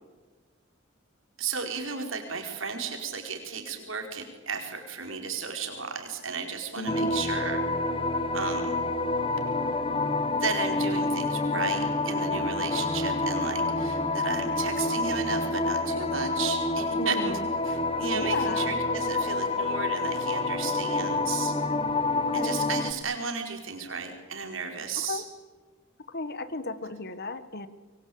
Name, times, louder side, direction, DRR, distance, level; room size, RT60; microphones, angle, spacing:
voice 1, 1.4-7.6 8.3-8.8 10.4-17.4 17.6-21.5 22.3-25.2, right 5 dB, 70° right, 4 dB, 5.1 m, -34 dB
voice 2, 6.8-7.2 17.0-17.5 18.1-18.7 22.2-22.6 25.0-25.2 26.1-27.7, left 3 dB, 50° left, 13 dB, 1.6 m, -34 dB
sound 1, 6.9-22.9, left 2 dB, 25° left, 1.4 m, -28 dB
26.0 x 23.5 x 8.8 m, 1.3 s
head